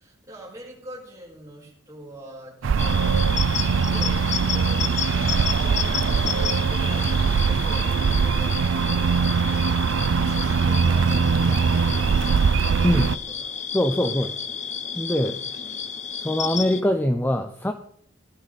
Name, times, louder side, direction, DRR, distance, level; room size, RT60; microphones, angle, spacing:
voice 1, 0.0-13.5 14.0-14.3 16.6-16.9, right 1 dB, 15° right, -4 dB, 5.5 m, -44 dB
sound 1, 2.6-13.2, right 5 dB, 75° right, 0.4 m, -22 dB
sound 2, 2.8-16.8, left 7 dB, 40° left, 0.9 m, -32 dB
voice 2, 13.7-14.3 15.0-15.4 16.2-17.7, left 1 dB, 10° left, 7 dB, 0.6 m, -22 dB
17.0 x 11.0 x 4.1 m, 0.68 s
head